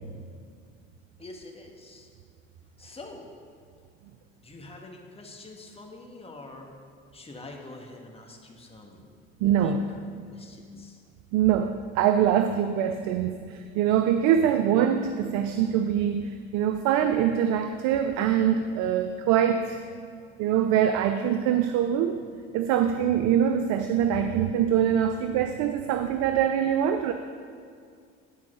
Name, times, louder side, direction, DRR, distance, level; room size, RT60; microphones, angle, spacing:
voice 1, 1.2-2.1 2.8-3.3 4.4-6.7 7.1-10.0 10.3-11.0 14.4-14.6, left 2 dB, 20° left, 1 dB, 1.5 m, -46 dB
voice 2, 9.4-9.8 11.3-19.8 20.4-22.2 22.5-27.1, right 9 dB, 70° right, 8 dB, 0.5 m, -24 dB
10.5 x 4.6 x 5.6 m, 2.2 s
supercardioid pair, 75°, 29 cm